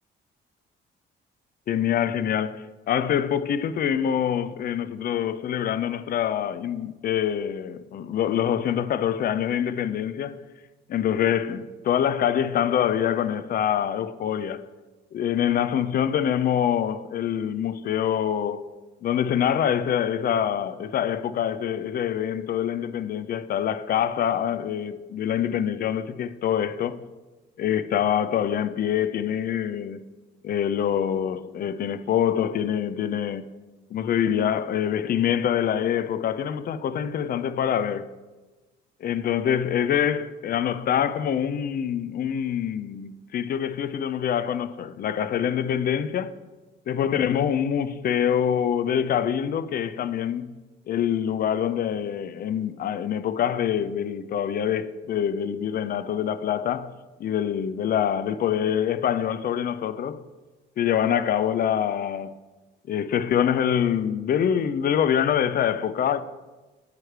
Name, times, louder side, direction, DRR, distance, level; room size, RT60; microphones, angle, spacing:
voice 1, 1.7-10.4 10.9-14.7 15.1-18.7 19.0-27.0 27.6-30.0 30.4-33.5 33.9-38.1 39.0-46.3 46.9-50.5 50.9-56.9 57.2-60.2 60.8-62.3 62.9-66.2, left 9 dB, 50° left, 0.4 m, -25 dB
9.4 x 3.3 x 4.6 m
cardioid pair, 90°, 20 cm